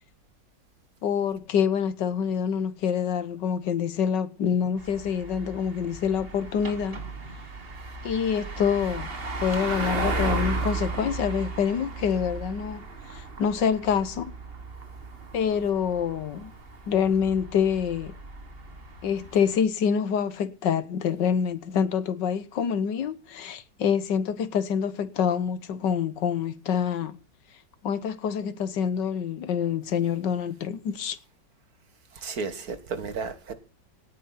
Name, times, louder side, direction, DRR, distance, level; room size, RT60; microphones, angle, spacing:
voice 1, 1.0-7.0 8.0-9.1 9.4-12.8 13.1-14.3 15.3-16.5 16.9-18.1 19.0-27.2 27.8-31.2, left 7 dB, 75° left, 1.6 m, -26 dB
sound 1, 4.8-19.6, right 3 dB, 35° right, 1.9 m, -35 dB
voice 2, 32.1-33.5, right 4 dB, 55° right, 2.3 m, -33 dB
18.5 x 9.5 x 4.1 m
omnidirectional pair, 1.9 m